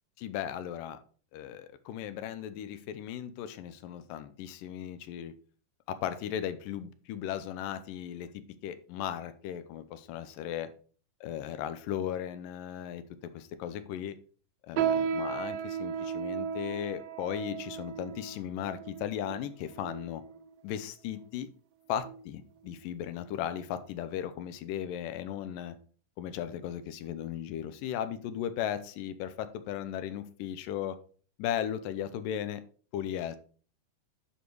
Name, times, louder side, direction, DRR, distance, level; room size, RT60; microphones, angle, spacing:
voice 1, 0.2-1.0 1.3-5.3 5.9-8.3 8.6-10.7 11.2-13.0 13.3-14.2 14.6-20.2 20.6-21.5 21.9-25.8 26.2-31.0 31.4-32.6 32.9-33.4, left 10 dB, 85° left, 2.4 m, -36 dB
sound 1, 14.8-20.4 21.1-21.2 22.0-22.3 22.7-22.8 23.5-23.6, right 7 dB, 80° right, 1.6 m, -35 dB
9.8 x 4.5 x 4.7 m
omnidirectional pair, 3.8 m